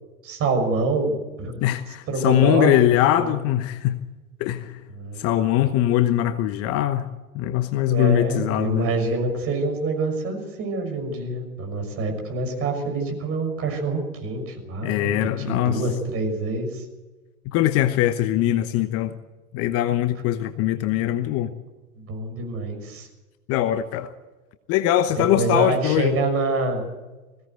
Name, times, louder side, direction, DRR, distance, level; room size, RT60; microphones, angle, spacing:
voice 1, 0.2-1.6 2.1-2.7 3.1-3.3 4.9-5.3 7.9-16.8 22.0-23.1 25.2-26.8, right 2 dB, 30° right, 5 dB, 6.2 m, -26 dB
voice 2, 1.6-4.0 4.4-4.8 5.2-7.1 7.3-8.9 14.8-15.9 17.4-19.2 19.5-21.5 23.5-24.1 24.7-26.1, left 13 dB, 30° left, 10 dB, 1.1 m, -22 dB
21.0 x 17.0 x 8.1 m, 1.2 s
hypercardioid pair, 110°, 45 cm